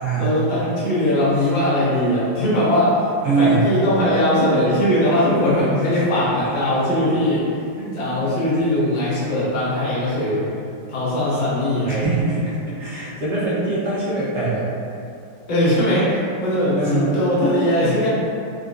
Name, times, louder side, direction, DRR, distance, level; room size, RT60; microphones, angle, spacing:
voice 1, 0.2-3.1 3.4-7.4 7.9-10.4 10.9-12.1 15.5-18.1, left 1 dB, 75° left, -9 dB, 0.4 m, -20 dB
voice 2, 3.2-3.6 7.8-8.0 11.9-14.6 16.7-17.1, right 3 dB, 55° right, -10 dB, 0.8 m, -22 dB
3.7 x 2.1 x 2.5 m, 2.6 s
omnidirectional pair, 2.2 m